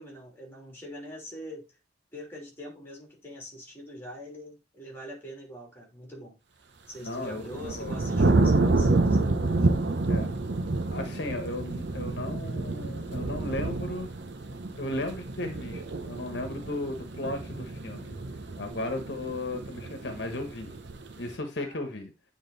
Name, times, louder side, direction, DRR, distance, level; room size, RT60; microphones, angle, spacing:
voice 1, 0.0-1.7 2.1-6.3 6.9-9.8 18.6-18.9 21.6-21.8, equal, 10° left, 3.0 m, -43 dB
voice 2, 7.0-8.0 10.1-10.3 10.9-14.2 14.8-18.1 18.6-20.8 21.2-22.1, left 1 dB, 65° left, 1.3 m, -35 dB
sound 1, 7.1-21.3, right 2 dB, 65° right, 0.9 m, -28 dB
9.0 x 3.8 x 3.9 m
head